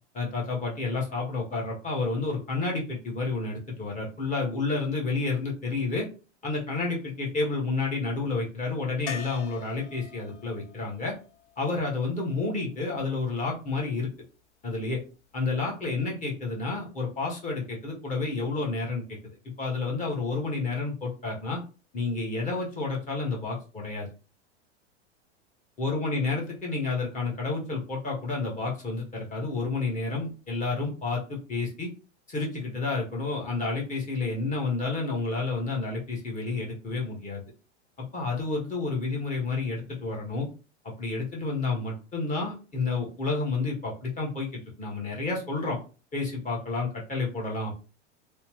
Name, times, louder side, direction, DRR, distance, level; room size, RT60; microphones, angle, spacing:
voice 1, 0.1-6.1 6.4-11.1 11.6-14.1 14.6-15.0 15.3-21.6 21.9-24.1 25.8-31.9 32.3-37.4 38.0-40.5 40.8-45.8 46.1-47.7, left 3 dB, 20° left, -2 dB, 1.1 m, -30 dB
sound 1, 9.1-12.9 15.6-15.7 15.9-16.0, left 8 dB, 75° left, 0.6 m, -44 dB
3.0 x 2.1 x 3.0 m, 0.35 s
hypercardioid pair, 105°, 36 cm